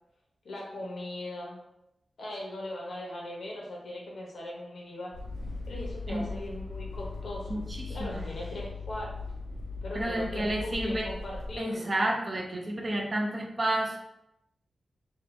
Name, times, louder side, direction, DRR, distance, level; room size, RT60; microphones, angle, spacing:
voice 1, 0.4-1.6 2.2-5.2 5.7-7.5 7.9-9.1 9.8-11.9, left 1 dB, 65° left, -2 dB, 0.8 m, -39 dB
sound 1, 5.1-11.6, left 3 dB, 75° right, 0.9 m, -38 dB
voice 2, 7.5-8.2 9.9-11.1 11.6-14.0, right 1 dB, 30° right, 1 dB, 0.4 m, -30 dB
2.6 x 2.6 x 3.1 m, 0.85 s
wide cardioid pair, 175°, 0 cm